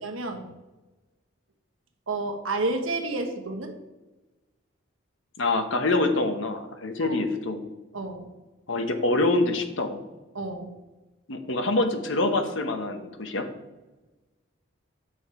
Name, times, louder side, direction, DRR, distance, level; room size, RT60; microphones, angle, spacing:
voice 1, 0.0-0.5 2.1-3.7 7.0-7.2 7.9-8.3 10.3-10.7, right 2 dB, 85° right, 4 dB, 1.2 m, -30 dB
voice 2, 5.4-7.6 8.7-10.0 11.3-13.5, left 2 dB, 70° left, 7 dB, 0.9 m, -25 dB
7.8 x 6.2 x 4.7 m, 1.1 s
head